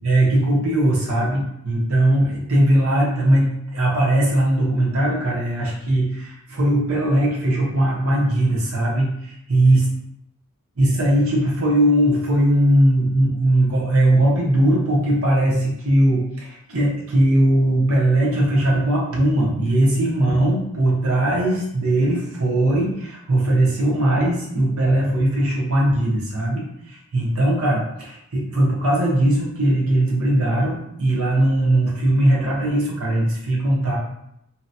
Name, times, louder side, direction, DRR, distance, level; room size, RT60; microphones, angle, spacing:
voice 1, 0.0-9.9 10.8-34.0, right 1 dB, 75° right, -4 dB, 0.9 m, -19 dB
2.8 x 2.2 x 2.6 m, 0.77 s
head